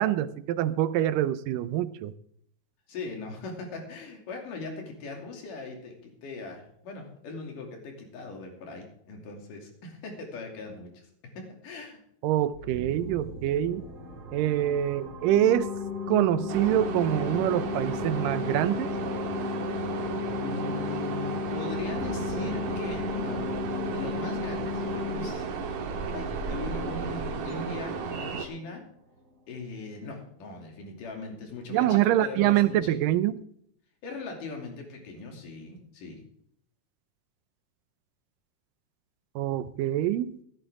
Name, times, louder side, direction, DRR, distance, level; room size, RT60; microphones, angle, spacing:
voice 1, 0.0-2.1 12.2-13.8 14.3-15.7 16.1-18.9 31.7-33.4 39.4-40.3, right 12 dB, 85° right, 13 dB, 2.4 m, -25 dB
voice 2, 2.9-11.0 11.4-12.0 20.3-23.4 23.9-25.5 26.1-28.8 29.5-32.9 34.0-36.2, left 3 dB, 70° left, 2 dB, 4.3 m, -39 dB
sound 1, 12.5-30.0, equal, 30° right, 2.8 m, -43 dB
sound 2, 15.3-25.3, left 8 dB, 25° left, 1.9 m, -34 dB
sound 3, 16.5-28.5, right 5 dB, 65° right, 2.7 m, -34 dB
16.5 x 12.0 x 3.6 m, 0.67 s
omnidirectional pair, 3.8 m